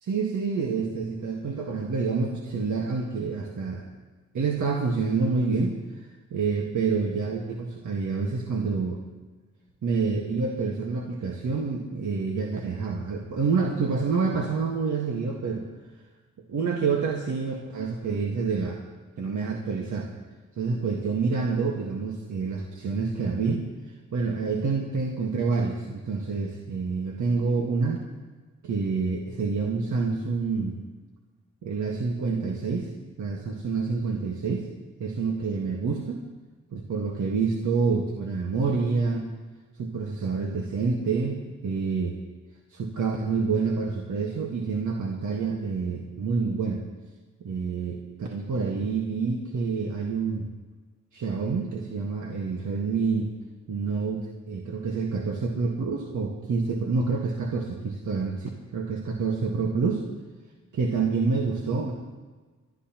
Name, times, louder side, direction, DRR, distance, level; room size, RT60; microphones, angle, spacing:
voice 1, 0.0-3.8 4.3-9.0 9.8-15.7 16.5-18.8 19.2-20.1 20.6-23.7 24.1-28.0 28.6-30.8 31.6-32.9 33.2-34.7 35.0-36.2 36.7-39.3 39.8-42.2 42.7-46.8 47.4-50.5 51.1-53.3 53.7-60.0 60.7-61.9, right 4 dB, 65° right, 0 dB, 1.6 m, -27 dB
26.5 x 12.0 x 3.0 m, 1.3 s
cardioid pair, 70°, 32 cm